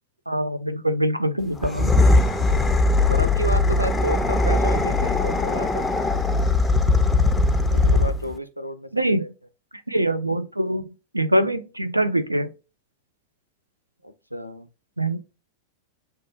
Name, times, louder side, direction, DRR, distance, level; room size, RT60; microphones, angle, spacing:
voice 1, 0.3-1.9 8.9-9.2 9.9-10.9 11.1-12.5 15.0-15.2, right 1 dB, 85° right, 0.3 m, -23 dB
sound 1, 1.6-8.3, left 2 dB, 10° left, 0.4 m, -20 dB
voice 2, 2.4-2.8 3.1-5.9 7.7-9.3 14.0-14.7, equal, 90° left, 0.4 m, -31 dB
6.2 x 2.3 x 2.7 m
figure-of-eight pair, 90°, 0 cm